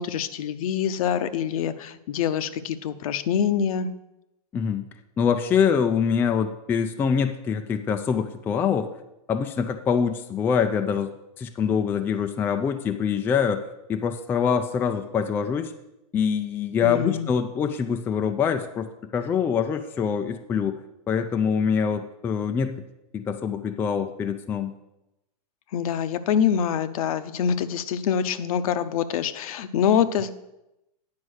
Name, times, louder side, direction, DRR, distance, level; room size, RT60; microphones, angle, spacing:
voice 1, 0.0-3.9 16.8-17.3 25.7-30.3, left 8 dB, 65° left, 11 dB, 0.7 m, -25 dB
voice 2, 4.5-4.9 5.2-8.9 9.3-11.1 11.4-15.7 16.1-18.9 19.1-20.8 21.1-22.8 23.1-24.7, left 7 dB, 10° left, 7 dB, 0.3 m, -24 dB
9.6 x 5.3 x 6.4 m, 0.91 s
supercardioid pair, 155°, 19 cm